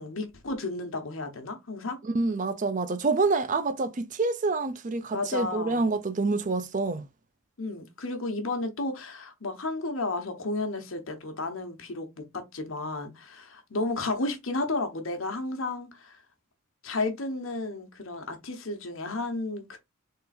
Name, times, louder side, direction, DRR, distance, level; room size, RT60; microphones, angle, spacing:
voice 1, 0.0-2.0 5.1-5.9 7.6-16.2 16.8-19.8, left 2 dB, 75° left, 1.1 m, -32 dB
voice 2, 2.1-7.0, right 3 dB, 35° right, 0.5 m, -27 dB
3.8 x 3.3 x 4.2 m
head